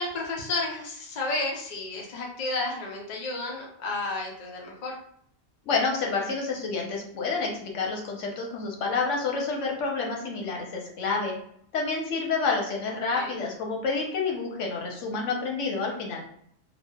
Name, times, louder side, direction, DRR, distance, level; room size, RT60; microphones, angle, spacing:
voice 1, 0.0-5.0 13.1-13.4, left 2 dB, 50° left, -1 dB, 0.6 m, -32 dB
voice 2, 5.7-11.3 11.7-16.2, left 4 dB, 90° left, 0 dB, 1.0 m, -29 dB
3.0 x 2.0 x 2.2 m, 0.66 s
omnidirectional pair, 1.2 m